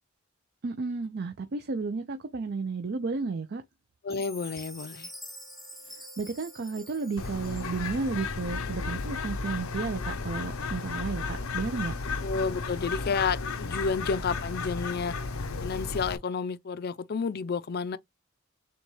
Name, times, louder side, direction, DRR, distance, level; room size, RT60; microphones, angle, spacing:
voice 1, 0.6-3.6 5.9-11.9, right 4 dB, 50° right, 0.5 m, -33 dB
voice 2, 4.0-5.1 12.2-15.2 15.6-18.0, left 5 dB, 50° left, 0.4 m, -30 dB
Chime, 4.1-8.3, equal, ahead, 0.7 m, -47 dB
Wind instrument woodwind instrument, 4.3-14.3, right 2 dB, 85° right, 1.6 m, -56 dB
Bird, 7.2-16.2, left 4 dB, 90° left, 0.7 m, -34 dB
6.8 x 2.3 x 3.1 m
head